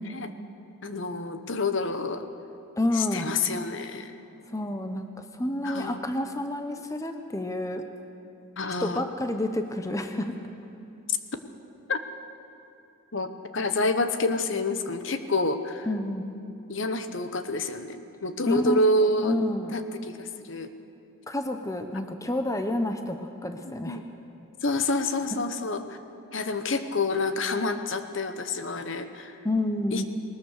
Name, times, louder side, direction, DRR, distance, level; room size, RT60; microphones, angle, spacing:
voice 1, 0.8-2.3 2.9-4.1 5.6-6.0 8.6-9.1 11.9-12.0 13.1-15.9 16.7-19.4 19.7-20.7 23.9-24.0 24.6-26.0 26.3-29.4 29.9-30.0, left 2 dB, 60° left, 9 dB, 1.0 m, -28 dB
voice 2, 2.8-3.3 4.5-7.8 8.8-10.3 15.9-16.3 18.5-18.8 19.2-19.8 21.3-23.2 23.4-24.0 29.4-30.1, left 1 dB, 15° left, 6 dB, 0.9 m, -29 dB
20.0 x 20.0 x 6.6 m, 2.8 s
head